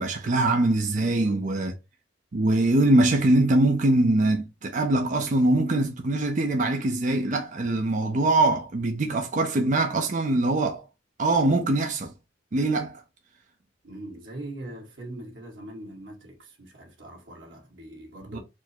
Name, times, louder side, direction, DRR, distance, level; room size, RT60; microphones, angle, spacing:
voice 1, 0.0-1.7 2.3-10.8 11.2-12.1 12.5-13.0 18.3-18.4, right 2 dB, 45° right, 0.5 m, -23 dB
voice 2, 1.0-1.4 13.8-18.4, right 1 dB, 90° right, 1.6 m, -41 dB
4.4 x 2.1 x 4.3 m
head